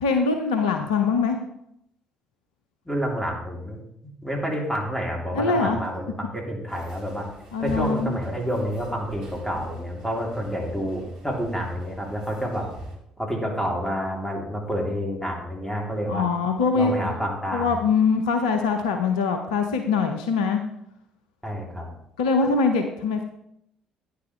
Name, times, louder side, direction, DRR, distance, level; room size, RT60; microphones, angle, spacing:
voice 1, 0.0-1.4 5.3-5.8 7.5-8.2 16.1-17.1 17.5-20.6 22.2-23.2, left 5 dB, 75° left, 6 dB, 0.7 m, -23 dB
voice 2, 2.8-3.8 4.2-7.2 7.6-12.7 13.2-16.3 16.7-17.7 21.4-21.9, equal, 5° left, -1 dB, 3.2 m, -29 dB
sound 1, 6.7-13.0, right 1 dB, 60° right, 3.7 m, -43 dB
10.5 x 9.6 x 3.3 m, 0.77 s
figure-of-eight pair, 50°, 4 cm